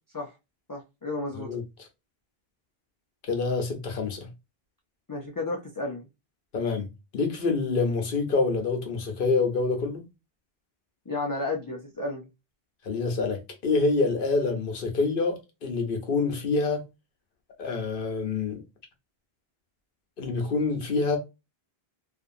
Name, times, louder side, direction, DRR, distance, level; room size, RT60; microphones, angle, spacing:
voice 1, 0.7-1.5 5.1-6.0 11.1-12.3, left 2 dB, 35° left, 0.3 m, -32 dB
voice 2, 3.3-4.3 6.5-10.1 12.8-16.8 17.6-18.6 20.2-21.2, left 3 dB, 60° left, 0.9 m, -26 dB
2.6 x 2.5 x 2.5 m
omnidirectional pair, 1.0 m